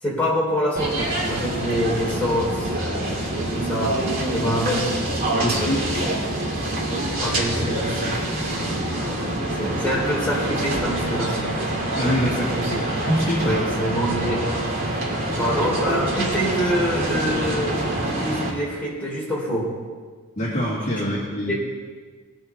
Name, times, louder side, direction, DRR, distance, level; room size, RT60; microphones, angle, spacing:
voice 1, 0.0-4.0 4.3-4.8 5.4-5.8 7.2-8.2 8.5-9.3 9.6-11.5 12.0-12.8 13.4-14.5 15.3-19.7 21.0-21.1 21.4-21.5, equal, 5° left, -6 dB, 3.6 m, -26 dB
sound 1, 0.8-18.5, right 1 dB, 40° right, 2.4 m, -25 dB
voice 2, 5.4-5.8 8.6-8.7 12.0-13.7 20.4-21.5, equal, 30° left, -8 dB, 2.2 m, -25 dB
20.0 x 7.7 x 4.5 m, 1.5 s
head